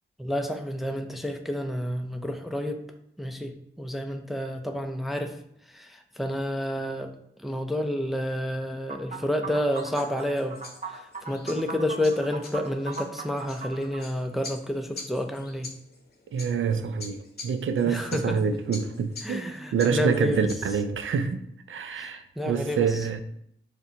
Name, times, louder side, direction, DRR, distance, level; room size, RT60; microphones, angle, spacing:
voice 1, 0.2-2.8 3.2-3.5 3.8-5.3 5.8-5.9 6.2-7.1 7.4-10.6 11.3-15.7 17.8-18.2 19.2-20.5 21.9-22.9, left 1 dB, ahead, 0.5 m, -29 dB
sound 1, 8.9-14.0, right 4 dB, 35° right, 0.8 m, -39 dB
sound 2, 9.7-20.8, left 3 dB, 50° left, 0.8 m, -46 dB
voice 2, 16.3-19.4 19.7-21.4 21.7-23.2, right 6 dB, 75° right, 0.4 m, -26 dB
6.7 x 2.2 x 2.8 m
cardioid pair, 45°, 20 cm